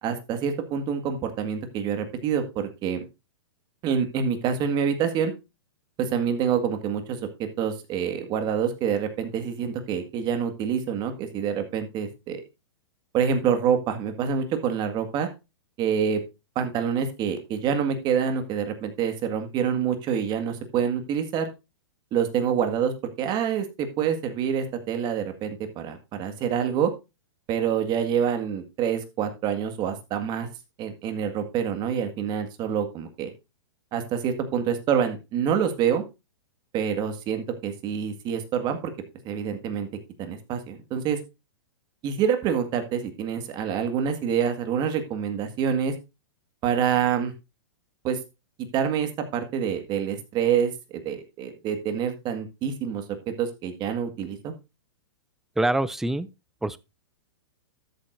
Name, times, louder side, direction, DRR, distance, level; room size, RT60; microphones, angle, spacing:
voice 1, 0.0-3.0 3.8-5.3 6.0-12.4 13.1-15.3 15.8-16.2 16.6-21.5 22.1-26.9 27.5-30.5 30.8-33.3 33.9-36.0 36.7-38.9 39.2-39.9 40.2-41.2 42.0-45.9 46.6-47.3 48.0-48.2 48.7-54.5, right 7 dB, 30° right, 1.8 m, -26 dB
voice 2, 55.6-56.3 56.6-56.8, right 2 dB, 5° right, 0.4 m, -24 dB
13.0 x 7.8 x 2.6 m
hypercardioid pair, 135°, 15 cm